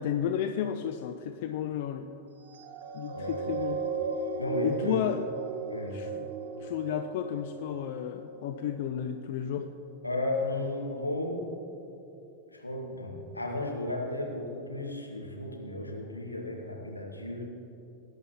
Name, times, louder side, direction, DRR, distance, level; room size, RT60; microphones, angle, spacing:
voice 1, 0.0-2.1 2.9-3.8 4.6-5.2 5.9-6.3 6.6-9.7, left 9 dB, 50° left, 7 dB, 0.4 m, -32 dB
sound 1, 2.4-9.1 9.7-9.9, right 4 dB, 60° right, 1.3 m, -36 dB
voice 2, 3.1-3.6 4.4-5.0 5.7-6.0 10.0-11.4 12.5-17.5, left 2 dB, 85° left, -1 dB, 1.7 m, -34 dB
20.0 x 9.7 x 3.0 m, 3.0 s
figure-of-eight pair, 90°, 0 cm